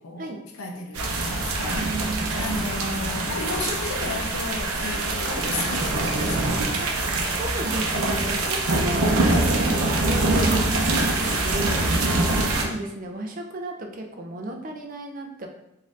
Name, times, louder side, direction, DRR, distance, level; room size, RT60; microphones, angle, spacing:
voice 1, 0.0-6.7, left 3 dB, 75° left, 2 dB, 0.7 m, -35 dB
sound 1, 0.9-12.6, right 2 dB, 80° right, 0.6 m, -24 dB
voice 2, 7.2-15.5, right 1 dB, 40° right, 3 dB, 0.4 m, -35 dB
4.1 x 2.6 x 3.6 m, 0.86 s
head